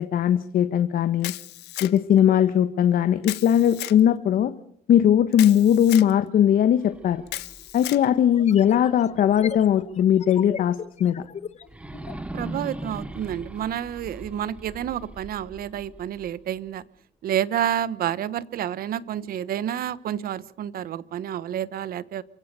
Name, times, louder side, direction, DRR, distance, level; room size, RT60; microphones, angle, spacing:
voice 1, 0.0-1.3 1.8-4.5 4.9-7.2 7.7-11.2, left 10 dB, 60° left, 11 dB, 1.3 m, -19 dB
Camera, 1.2-2.2 3.2-4.0 5.3-6.1 7.3-8.0, left 18 dB, 85° left, 1.0 m, -35 dB
sound 1, 6.7-9.7 10.1-10.2 11.6-16.7, right 1 dB, 5° right, 1.2 m, -40 dB
sound 2, 6.9-7.0 8.3-12.3, left 8 dB, 40° left, 1.0 m, -38 dB
voice 2, 12.3-16.8 17.2-22.2, right 10 dB, 60° right, 19 dB, 1.1 m, -29 dB
28.0 x 16.5 x 6.8 m, 0.64 s
cardioid pair, 110°, 17 cm